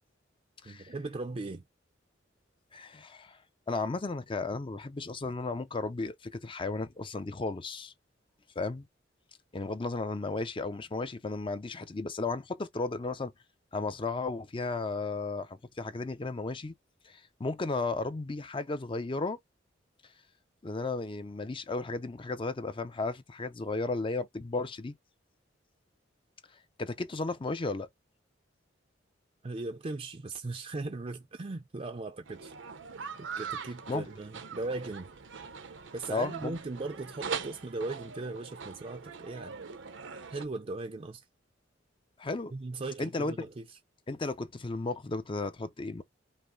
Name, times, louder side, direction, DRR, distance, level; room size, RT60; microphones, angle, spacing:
voice 1, 0.6-1.6 29.4-32.5 33.2-35.1 35.9-39.5 40.3-41.2 42.5-43.8, right 2 dB, 30° right, 0.5 m, -38 dB
voice 2, 2.7-3.4 3.7-7.9 8.6-8.9 9.5-13.3 13.7-16.7 17.1-19.4 20.6-24.9 26.8-27.9 33.9-34.1 36.1-36.6 42.2-42.5 43.0-43.3 44.1-46.0, left 3 dB, 25° left, 0.5 m, -34 dB
sound 1, 32.3-40.4, right 6 dB, 80° right, 0.8 m, -42 dB
5.5 x 2.0 x 3.7 m
head